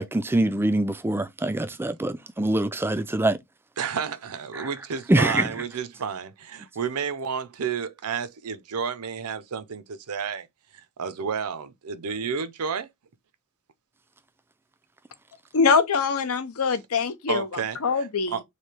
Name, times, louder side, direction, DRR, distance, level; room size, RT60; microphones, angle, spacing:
voice 1, 0.0-3.4 4.6-4.7 5.1-5.4, right 1 dB, 10° right, 0.3 m, -24 dB
voice 2, 3.8-10.5 10.7-12.9 17.3-18.4, right 6 dB, 80° right, 0.6 m, -31 dB
voice 3, 15.5-17.5 17.8-18.4, left 5 dB, 70° left, 0.6 m, -23 dB
3.3 x 2.7 x 4.3 m
head